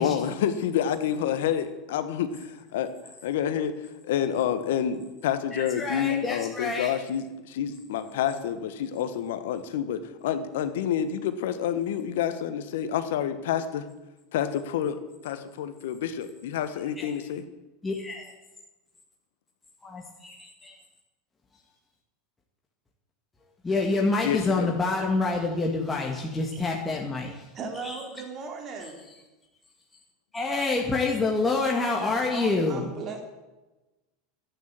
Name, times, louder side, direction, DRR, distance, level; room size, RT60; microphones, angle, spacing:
voice 1, 0.0-2.9 3.2-3.7 4.0-13.9 14.3-15.0 15.2-17.5 24.2-24.7, left 9 dB, 70° left, 11 dB, 1.2 m, -28 dB
voice 2, 5.5-6.9 17.0-17.1 17.8-18.3 19.8-20.7 23.6-27.3 27.8-27.9 30.3-32.9, left 3 dB, 15° left, -1 dB, 1.9 m, -27 dB
voice 3, 27.5-29.0 32.3-33.2, right 5 dB, 40° right, 3 dB, 3.2 m, -37 dB
11.5 x 9.3 x 7.6 m, 1.1 s
hypercardioid pair, 90°, 0 cm